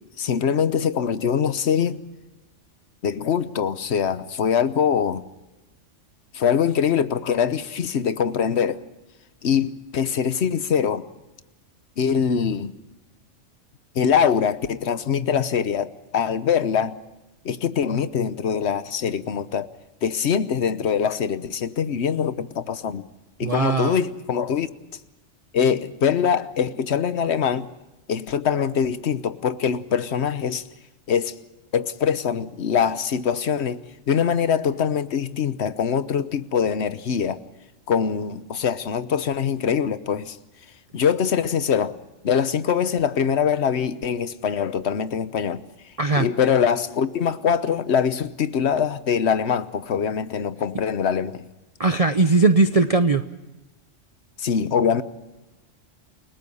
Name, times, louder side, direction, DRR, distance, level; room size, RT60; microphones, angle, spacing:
voice 1, 0.2-2.0 3.0-5.2 6.3-8.8 9.4-11.1 12.0-12.7 13.9-17.0 17.4-19.7 20.0-23.0 23.4-24.7 25.5-27.7 28.1-30.6 31.1-31.3 31.7-33.8 34.1-37.4 37.9-40.4 40.9-41.9 42.2-45.6 46.2-51.4 54.4-55.0, left 7 dB, 60° left, 1.2 m, -23 dB
voice 2, 23.4-24.0 46.0-46.3 51.8-53.2, right 3 dB, 35° right, 0.7 m, -19 dB
29.5 x 19.0 x 5.5 m
omnidirectional pair, 1.3 m